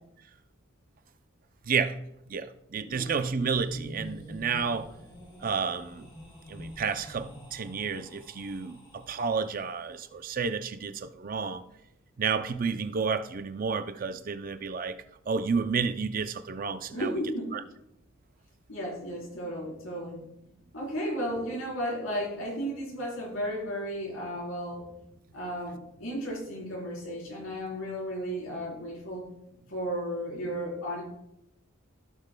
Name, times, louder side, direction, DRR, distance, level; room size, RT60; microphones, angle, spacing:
voice 1, 1.7-2.0 2.3-4.9 5.4-6.1 6.5-11.6 12.2-15.0 15.3-17.1 17.5-17.6, right 5 dB, 40° right, 0.5 m, -31 dB
sound 1, 2.9-9.8, equal, 25° left, 2.8 m, -47 dB
voice 2, 16.9-17.6 18.7-20.2 20.7-24.9 25.3-29.3 29.7-31.0, equal, 80° left, 3.7 m, -34 dB
15.5 x 6.6 x 2.2 m
head